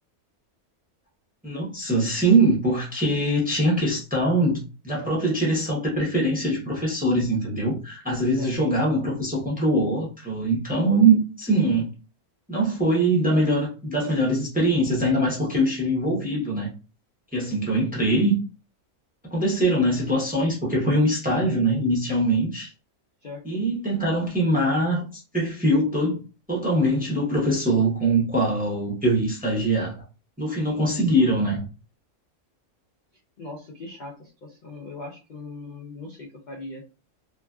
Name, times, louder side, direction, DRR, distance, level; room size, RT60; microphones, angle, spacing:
voice 1, 1.4-11.9 12.5-16.7 17.3-18.4 19.3-22.7 23.4-26.2 26.5-29.9 30.4-31.6, right 1 dB, 10° right, 0.5 m, -22 dB
voice 2, 23.2-23.6 33.4-36.8, left 2 dB, 65° left, 0.4 m, -39 dB
2.9 x 2.5 x 2.3 m
omnidirectional pair, 1.5 m